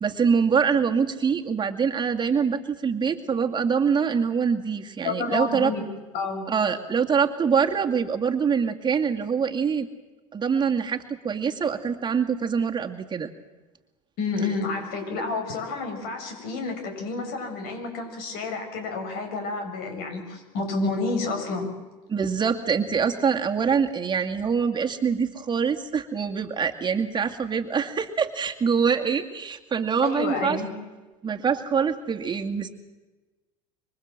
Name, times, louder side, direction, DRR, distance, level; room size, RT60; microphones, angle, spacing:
voice 1, 0.0-5.7 6.5-9.9 10.3-13.3 22.1-30.6 31.2-32.7, right 6 dB, 25° right, 3 dB, 2.2 m, -24 dB
voice 2, 5.0-5.8 6.1-6.4 14.2-21.7 30.0-30.7, left 3 dB, 60° left, 5 dB, 7.9 m, -29 dB
26.5 x 24.0 x 7.7 m, 1.2 s
hypercardioid pair, 85°, 18 cm